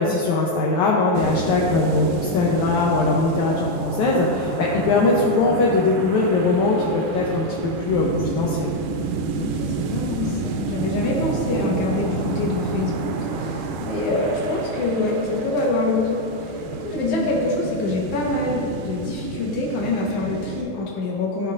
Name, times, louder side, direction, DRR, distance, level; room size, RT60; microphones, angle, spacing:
voice 1, 0.0-8.7, left 3 dB, 80° left, -3 dB, 1.8 m, -21 dB
sound 1, 1.1-20.6, right 4 dB, 85° right, 2.3 m, -29 dB
voice 2, 4.9-5.2 9.4-21.5, left 2 dB, 60° left, -2 dB, 1.8 m, -25 dB
14.0 x 5.2 x 2.5 m, 2.6 s
omnidirectional pair, 4.0 m